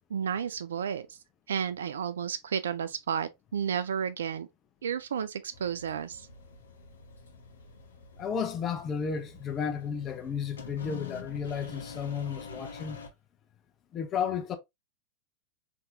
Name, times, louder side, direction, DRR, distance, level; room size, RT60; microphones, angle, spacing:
voice 1, 0.1-1.2 1.5-4.5 4.8-6.3, right 7 dB, 80° right, 0.3 m, -32 dB
sound 1, 5.5-13.1, left 4 dB, 85° left, 0.8 m, -46 dB
voice 2, 8.2-13.0 13.9-14.6, left 7 dB, 35° left, 0.6 m, -33 dB
3.4 x 2.8 x 2.5 m
hypercardioid pair, 95°, 0 cm